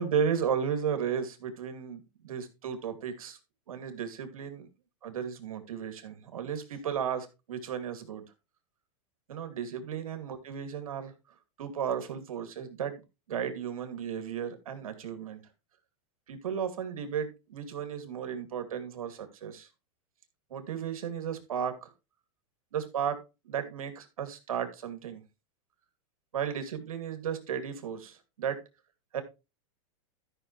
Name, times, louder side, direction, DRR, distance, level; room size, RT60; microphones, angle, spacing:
voice 1, 0.0-3.4 3.7-4.7 5.0-8.2 9.3-11.1 11.6-13.0 13.3-15.4 16.3-19.7 20.5-21.9 22.7-23.2 23.4-25.2 26.3-28.6 29.1-29.2, right 7 dB, 90° right, 8 dB, 2.4 m, -34 dB
13.5 x 6.3 x 3.1 m, 0.27 s
supercardioid pair, 135°, 18 cm